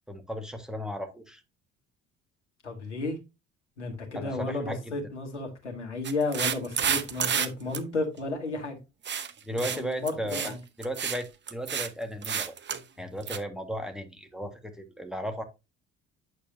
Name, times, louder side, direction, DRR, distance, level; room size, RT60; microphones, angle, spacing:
voice 1, 0.1-1.4 4.1-4.9 9.4-12.6 13.0-15.4, equal, ahead, 1.6 m, -35 dB
voice 2, 2.6-3.2 3.8-8.8 9.7-10.6, left 3 dB, 85° left, 1.5 m, -33 dB
sound 1, 6.0-7.5 7.7-7.8 9.0-9.3 9.6-9.8 10.1-10.5 10.8-11.2 11.5-11.9 12.2-12.8 13.3-13.4, right 7 dB, 30° right, 1.0 m, -29 dB
8.9 x 6.8 x 2.7 m
figure-of-eight pair, 55°, 35 cm